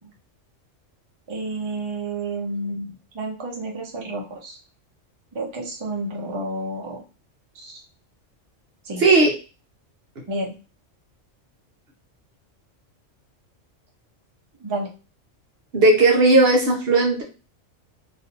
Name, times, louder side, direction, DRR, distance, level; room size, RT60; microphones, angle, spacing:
voice 1, 1.3-4.6 5.3-7.0 7.5-7.8 8.8-9.0 10.3-10.6 14.6-14.9, right 2 dB, 30° right, 0 dB, 0.7 m, -30 dB
voice 2, 9.0-9.3 15.7-17.2, right 2 dB, 60° right, 0 dB, 1.0 m, -16 dB
3.1 x 2.6 x 2.8 m, 0.32 s
omnidirectional pair, 1.3 m